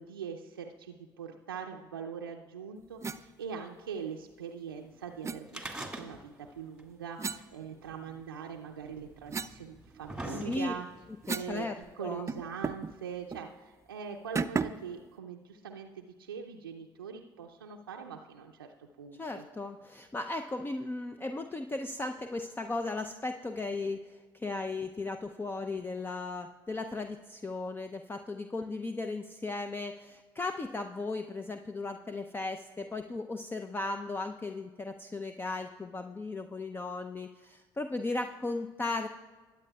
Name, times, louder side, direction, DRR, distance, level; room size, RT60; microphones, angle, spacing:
voice 1, 0.0-10.9 11.3-11.7 11.9-19.5, right 6 dB, 90° right, 1 dB, 0.5 m, -42 dB
sound 1, 3.0-3.2 5.2-5.4 7.2-8.2 8.7-11.6 11.9-12.0 12.3-12.9 13.3-13.5 14.4-14.9, right 5 dB, 25° right, 0.5 m, -36 dB
sound 2, 5.5-6.5 6.8-6.9 7.9-8.0 8.9-9.0 9.6-11.0 11.8-11.9, right 1 dB, 5° right, 1.9 m, -41 dB
voice 2, 10.2-10.7 11.3-12.2 19.2-39.1, left 3 dB, 20° left, 7 dB, 0.6 m, -36 dB
21.0 x 8.9 x 2.3 m, 1.4 s
hypercardioid pair, 55°, 12 cm